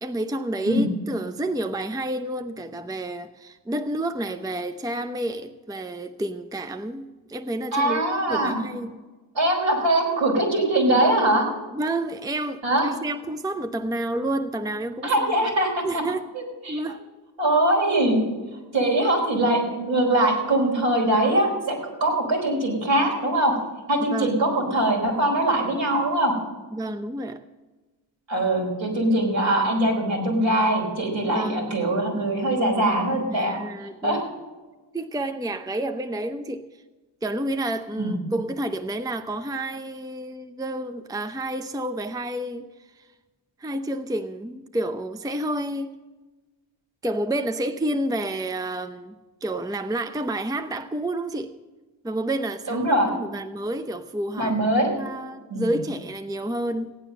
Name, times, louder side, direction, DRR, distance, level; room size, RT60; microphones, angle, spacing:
voice 1, 0.0-8.9 11.7-15.3 15.8-16.3 16.7-17.0 24.1-24.4 26.7-27.4 31.3-31.8 33.3-34.2 34.9-36.7 37.2-42.7 42.9-43.1 43.6-45.9 47.0-49.1 49.4-51.5 52.0-57.0, right 1 dB, 10° right, 0.6 m, -29 dB
voice 2, 7.7-8.6 9.3-11.5 12.6-12.9 15.0-16.0 16.3-16.8 17.4-18.2 18.7-23.5 23.9-26.3 28.3-33.6 34.0-34.2 38.0-38.2 52.7-53.1 54.4-54.9 55.5-55.7, right 1 dB, 65° right, 4.6 m, -22 dB
16.0 x 9.2 x 6.6 m
supercardioid pair, 45°, 48 cm